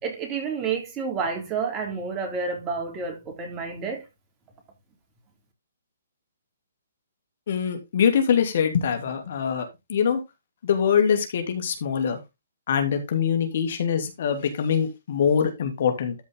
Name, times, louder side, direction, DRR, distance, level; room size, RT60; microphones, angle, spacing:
voice 1, 0.0-4.0, right 5 dB, 20° right, 3.4 m, -29 dB
voice 2, 7.5-10.2 10.6-12.2 12.7-16.1, left 7 dB, 55° left, 2.8 m, -23 dB
13.0 x 5.3 x 3.7 m
hypercardioid pair, 145°, 0 cm